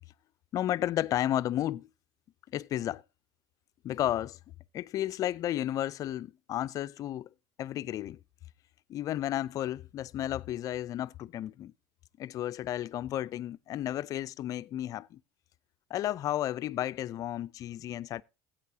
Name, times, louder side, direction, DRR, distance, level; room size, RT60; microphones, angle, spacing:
voice 1, 0.5-1.9 2.5-3.0 3.8-4.4 4.7-7.3 7.6-8.2 8.9-11.7 12.2-15.2 15.9-18.2, left 12 dB, 45° left, 0.4 m, -32 dB
15.5 x 8.8 x 2.8 m
supercardioid pair, 100°, 8 cm